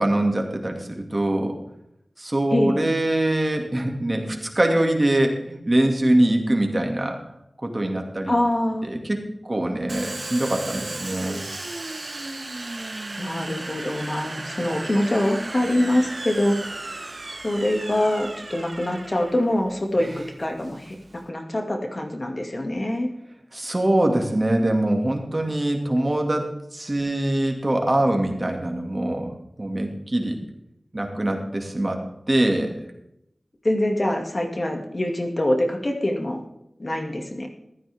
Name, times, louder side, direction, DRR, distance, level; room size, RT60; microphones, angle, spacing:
voice 1, 0.0-1.5 2.2-7.2 7.6-8.3 8.8-9.2 9.5-11.4 23.5-30.4 30.9-32.8, right 1 dB, 35° right, 3 dB, 2.3 m, -23 dB
voice 2, 8.3-8.9 13.2-16.7 17.4-23.1 33.6-36.4 36.8-37.5, left 1 dB, 40° left, 2 dB, 2.2 m, -24 dB
Domestic sounds home sounds, 9.9-21.3, right 2 dB, 50° right, 1.3 m, -35 dB
15.0 x 13.0 x 3.6 m, 0.79 s
wide cardioid pair, 70°, 0 cm